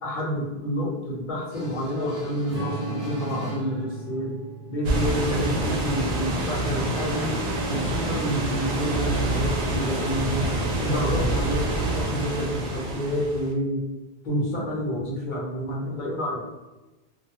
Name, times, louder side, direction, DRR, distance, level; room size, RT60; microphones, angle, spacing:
voice 1, 0.0-4.3 4.7-7.4 7.7-13.8 14.2-16.4, equal, 55° left, -4 dB, 0.8 m, -29 dB
sound 1, 1.5-4.0, left 1 dB, 20° right, 0.8 m, -39 dB
Strum, 2.5-7.1, right 5 dB, 20° left, 1.0 m, -38 dB
sound 2, 4.8-13.5, right 2 dB, 85° right, 0.9 m, -26 dB
2.3 x 2.2 x 2.8 m, 1.1 s
omnidirectional pair, 1.0 m